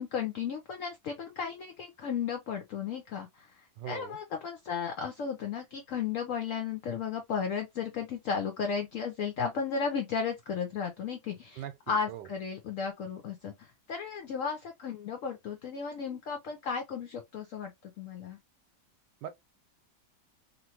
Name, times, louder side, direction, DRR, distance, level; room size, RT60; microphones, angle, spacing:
voice 1, 0.0-17.7 18.0-18.4, left 6 dB, 65° left, 0.8 m, -34 dB
voice 2, 3.8-4.2 11.6-12.3 19.2-19.3, right 11 dB, 85° right, 1.3 m, -41 dB
2.9 x 2.5 x 2.8 m
omnidirectional pair, 1.8 m